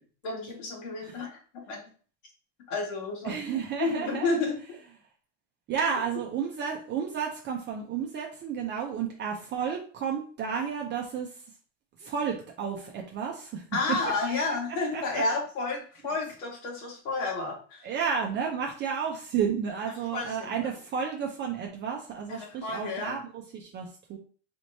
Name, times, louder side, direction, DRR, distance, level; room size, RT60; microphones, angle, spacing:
voice 1, 0.2-1.4 1.7-1.9 2.7-3.4 3.8-4.8 13.7-17.9 20.1-20.7 22.3-23.2, left 3 dB, 75° left, -1 dB, 1.9 m, -31 dB
voice 2, 3.2-4.3 5.7-11.4 12.0-13.6 14.9-15.2 17.8-24.2, right 7 dB, 30° right, 1 dB, 0.5 m, -32 dB
4.2 x 3.1 x 2.7 m, 0.42 s
supercardioid pair, 140°, 37 cm